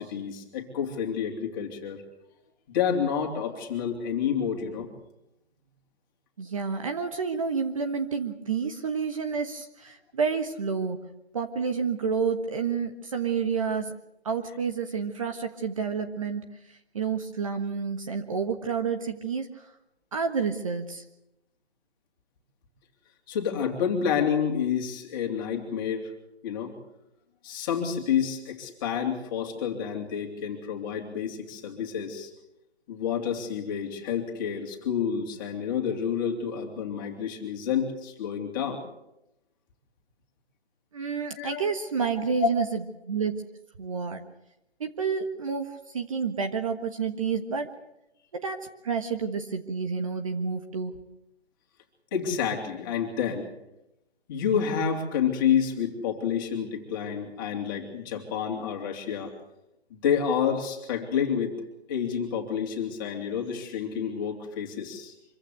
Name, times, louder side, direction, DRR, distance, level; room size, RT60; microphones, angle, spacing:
voice 1, 0.0-2.0 2.7-4.9 23.3-26.1 26.4-26.7 27.4-32.3 32.9-38.8 41.4-41.6 42.4-42.5 52.1-53.5 54.3-59.3 59.9-65.1, left 7 dB, 20° left, 2 dB, 3.3 m, -29 dB
voice 2, 6.4-11.0 11.3-13.9 14.2-19.7 20.1-21.0 40.9-42.8 43.1-43.4 43.8-44.2 44.8-47.7 48.3-51.0, right 5 dB, 30° right, 6 dB, 1.4 m, -29 dB
25.5 x 15.5 x 8.2 m, 0.86 s
figure-of-eight pair, 160°, 33 cm